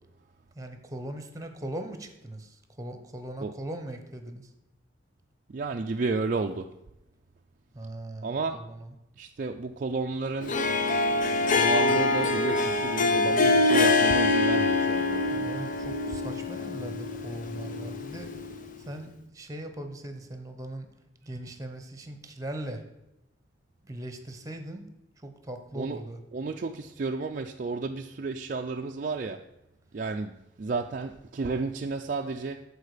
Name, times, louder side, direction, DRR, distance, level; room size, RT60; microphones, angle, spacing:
voice 1, 0.5-4.5 7.7-9.0 15.3-20.9 21.2-22.8 23.8-24.8 25.2-26.2, right 1 dB, 20° right, 7 dB, 1.0 m, -40 dB
voice 2, 5.5-6.7 8.2-8.6 9.2-10.6 11.5-15.4 25.8-26.0 26.3-29.5 29.9-32.6, right 3 dB, 45° right, 3 dB, 0.4 m, -32 dB
Harp, 10.4-18.7, left 3 dB, 45° left, 0.7 m, -25 dB
13.0 x 4.8 x 5.0 m, 0.90 s
head